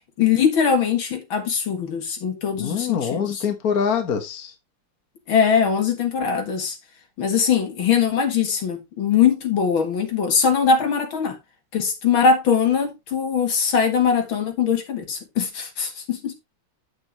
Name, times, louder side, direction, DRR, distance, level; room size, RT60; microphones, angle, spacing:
voice 1, 0.2-3.4 5.3-6.8 7.2-11.4 11.7-16.3, left 6 dB, 65° left, 2.5 m, -21 dB
voice 2, 2.6-4.5, left 7 dB, 45° left, 1.7 m, -24 dB
8.7 x 8.1 x 3.0 m
omnidirectional pair, 2.4 m